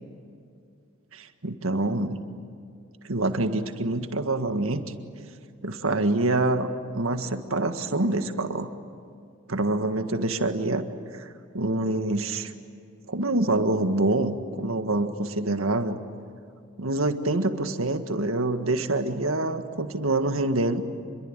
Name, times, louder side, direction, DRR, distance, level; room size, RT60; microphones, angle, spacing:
voice 1, 1.1-2.2 3.0-4.8 5.6-6.7 6.9-8.7 9.5-10.9 11.1-11.3 11.5-12.5 13.1-16.0 16.8-20.8, right 2 dB, 80° right, 7 dB, 1.8 m, -26 dB
28.0 x 22.5 x 9.1 m, 2.4 s
head